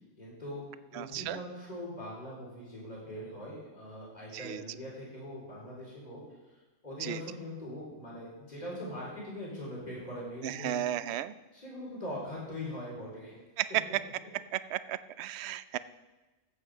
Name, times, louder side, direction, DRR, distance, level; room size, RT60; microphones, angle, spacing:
voice 1, 0.2-0.6 0.9-6.2 6.8-10.8 11.5-13.4, left 1 dB, 30° left, -5 dB, 4.2 m, -41 dB
voice 2, 0.9-1.4 4.3-4.6 7.0-7.2 10.4-11.3 13.6-13.8 14.7-15.8, right 12 dB, 65° right, 15 dB, 0.7 m, -34 dB
14.5 x 8.5 x 4.9 m, 1.1 s
omnidirectional pair, 1.4 m